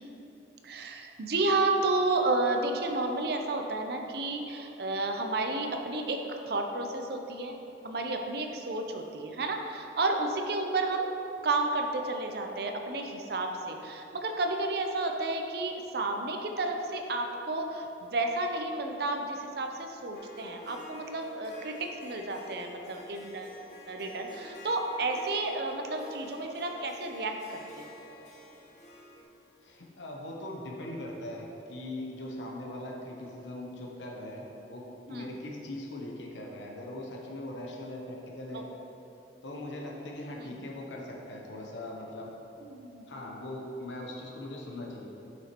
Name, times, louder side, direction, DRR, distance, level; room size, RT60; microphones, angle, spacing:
voice 1, 0.6-7.5 7.8-11.1 11.4-23.6 23.9-27.9 35.1-35.3 38.5-38.6 40.4-40.6 42.6-43.1, right 2 dB, 60° right, 4 dB, 0.6 m, -31 dB
Harp, 20.1-29.2, left 2 dB, 40° left, 1.0 m, -49 dB
voice 2, 29.6-38.6 39.4-42.3 43.1-45.1, left 1 dB, 90° left, -1 dB, 0.9 m, -40 dB
8.2 x 6.1 x 3.0 m, 2.9 s
head